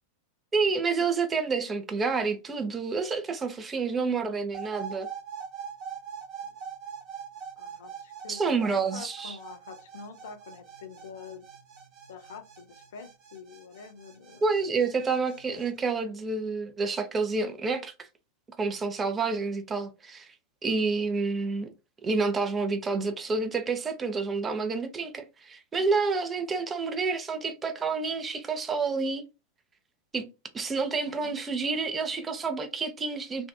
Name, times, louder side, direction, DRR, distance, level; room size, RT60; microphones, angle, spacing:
voice 1, 0.5-5.1 8.3-9.4 14.4-18.1 18.6-20.3 20.6-21.7 22.0-29.2 30.1-30.3 30.5-33.5, right 4 dB, 20° right, 0.5 m, -29 dB
sound 1, 4.5-15.7, right 7 dB, 35° right, 1.0 m, -43 dB
voice 2, 7.6-11.5 12.1-14.4 31.1-31.4, left 5 dB, 65° left, 0.7 m, -46 dB
2.6 x 2.4 x 2.2 m
figure-of-eight pair, 90°, 0 cm